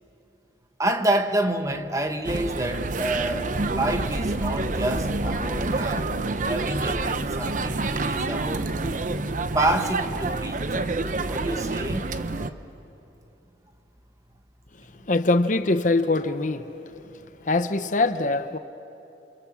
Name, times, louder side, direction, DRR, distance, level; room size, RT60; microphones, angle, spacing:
voice 1, 0.8-6.1 6.4-8.7 9.5-10.6 11.2-12.0 12.3-12.5, right 1 dB, 20° right, 1.2 m, -28 dB
sound 1, 2.2-12.5, right 3 dB, 45° right, 0.8 m, -28 dB
sound 2, 3.1-9.6, left 1 dB, 75° left, 2.4 m, -38 dB
voice 2, 15.0-16.7 17.0-18.6, left 2 dB, 45° left, 0.8 m, -23 dB
29.0 x 28.0 x 7.3 m
head